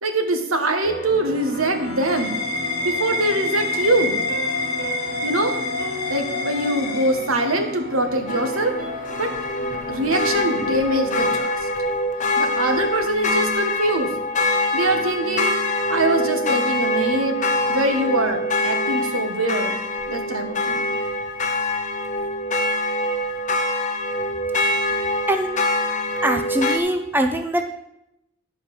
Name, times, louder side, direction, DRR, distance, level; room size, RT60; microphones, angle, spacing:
voice 1, 0.0-2.4 2.8-4.2 5.2-5.5 6.1-8.7 9.2-9.3 9.9-11.6 12.4-14.1 14.7-15.5 15.9-17.4 17.7-19.8 20.1-20.9, right 1 dB, 80° right, 6 dB, 1.4 m, -23 dB
sound 1, 0.8-11.4, left 1 dB, 45° right, 3.2 m, -35 dB
sound 2, 1.3-7.8, left 2 dB, 85° left, 1.1 m, -28 dB
sound 3, 8.3-26.8, left 1 dB, 35° left, 0.8 m, -24 dB
voice 2, 26.2-27.6, right 1 dB, 10° right, 5 dB, 0.6 m, -22 dB
11.0 x 4.8 x 6.5 m, 0.83 s
head